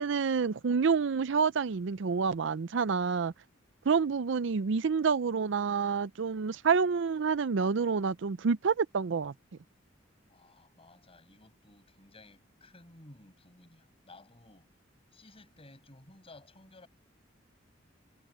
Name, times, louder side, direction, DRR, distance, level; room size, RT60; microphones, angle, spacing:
voice 1, 0.0-3.3 3.9-9.3, right 5 dB, 70° right, 0.5 m, -28 dB
voice 2, 10.3-14.7 15.1-16.9, left 2 dB, 30° left, 6.3 m, -56 dB
head